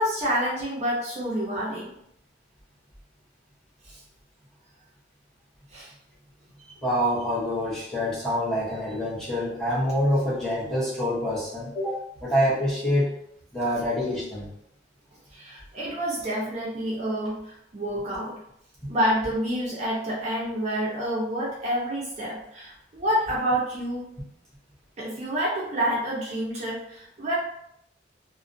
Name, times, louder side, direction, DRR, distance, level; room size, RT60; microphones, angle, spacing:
voice 1, 0.0-1.9 3.9-4.0 5.7-5.9 15.3-18.4 18.9-24.1 25.0-27.4, equal, 40° right, -4 dB, 0.5 m, -28 dB
voice 2, 6.8-13.1 13.5-14.5, equal, 5° left, -9 dB, 0.8 m, -26 dB
2.4 x 2.1 x 2.5 m, 0.74 s
head